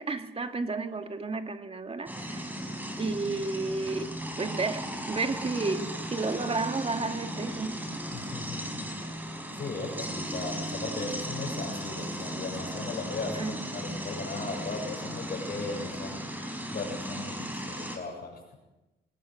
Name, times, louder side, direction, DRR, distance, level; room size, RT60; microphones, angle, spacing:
voice 1, 0.0-2.5 3.0-7.8 13.3-13.6, right 3 dB, 30° right, 6 dB, 2.4 m, -32 dB
sound 1, 2.1-18.0, equal, 10° right, 5.5 m, -36 dB
voice 2, 8.1-8.9 9.5-16.2 16.7-18.5, left 3 dB, 50° left, 2 dB, 7.0 m, -37 dB
23.5 x 21.0 x 6.7 m, 1.0 s
cardioid pair, 90°, 20 cm